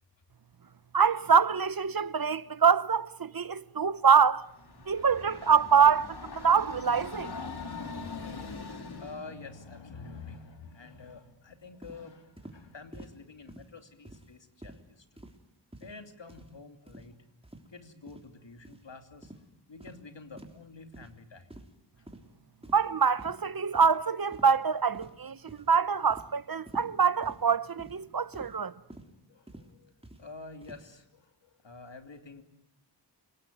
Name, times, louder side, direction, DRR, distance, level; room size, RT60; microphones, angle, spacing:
voice 1, 0.9-4.4 4.9-7.3 22.7-28.7, right 6 dB, 55° right, 0.9 m, -25 dB
Train, 4.4-9.3, left 4 dB, 60° left, 2.4 m, -42 dB
voice 2, 7.5-15.3 15.8-17.3 17.7-19.3 19.7-21.5 22.0-22.1 25.5-25.6 29.3-32.4, left 3 dB, 80° left, 3.0 m, -48 dB
sound 1, 11.8-12.0 12.4-12.6 12.9-13.2 13.5-13.7 14.1-14.3 14.6-14.8 15.2-15.4 15.7-16.0 16.3-16.5 16.9-17.1 17.4-17.7 18.1-18.3 18.6-18.8 19.2-19.4 19.8-20.0 20.4-20.6 20.9-21.1 21.5-21.8 22.1-22.3 22.6-22.9 23.2-23.4 23.7-23.9 24.3-24.6 24.9-25.2 25.5-25.7 26.1-26.3 26.7-26.9 27.2-27.4 27.8-28.0 28.3-28.6 28.9-29.1 29.5-29.7 30.0-30.2 30.6-30.8, right 1 dB, 15° right, 3.4 m, -48 dB
29.5 x 18.5 x 9.4 m
wide cardioid pair, 80°, 44 cm